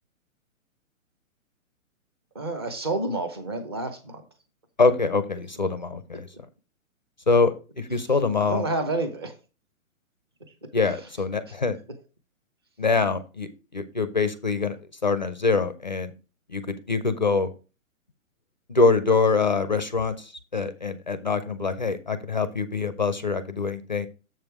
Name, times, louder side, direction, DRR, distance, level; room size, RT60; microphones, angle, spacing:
voice 1, 2.3-4.2 6.1-6.2 8.5-9.3 10.9-11.0, right 2 dB, 20° right, 7 dB, 0.6 m, -29 dB
voice 2, 4.8-6.3 7.3-8.6 10.7-11.8 12.8-14.8 15.0-16.1 16.5-17.5 18.7-24.1, left 4 dB, 35° left, 12 dB, 0.4 m, -24 dB
7.4 x 5.4 x 4.6 m, 0.32 s
hypercardioid pair, 175°, 41 cm